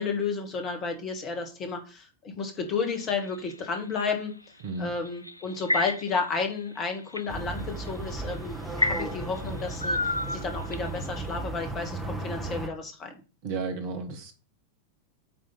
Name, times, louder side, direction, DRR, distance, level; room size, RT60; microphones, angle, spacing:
voice 1, 0.0-4.4 4.8-10.0 10.3-13.2, left 4 dB, 30° left, 5 dB, 1.9 m, -32 dB
sound 1, 2.8-4.1 5.0-6.3 6.7-7.3 7.9-8.1 8.8-11.0, left 1 dB, 85° left, 0.4 m, -30 dB
sound 2, 7.3-12.7, right 2 dB, ahead, 1.7 m, -35 dB
voice 2, 13.4-14.3, right 4 dB, 50° right, 5 dB, 2.0 m, -33 dB
8.6 x 3.7 x 5.7 m, 0.33 s
figure-of-eight pair, 90°, 0 cm